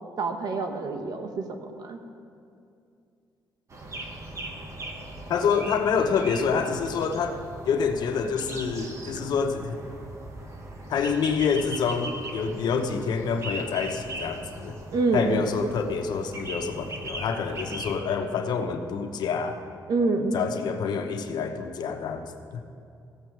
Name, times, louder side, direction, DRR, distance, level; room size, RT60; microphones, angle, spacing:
voice 1, 0.2-2.0 14.9-15.5 15.8-15.9 19.9-20.4, right 3 dB, 60° right, 6 dB, 1.1 m, -27 dB
sound 1, 3.7-18.0, right 1 dB, 40° right, 1.3 m, -39 dB
voice 2, 5.3-7.4 7.6-9.8 10.9-14.8 15.1-19.6 20.3-22.3 22.5-22.6, left 6 dB, 65° left, 5 dB, 0.9 m, -27 dB
15.5 x 7.3 x 4.7 m, 2.4 s
cardioid pair, 100°, 8 cm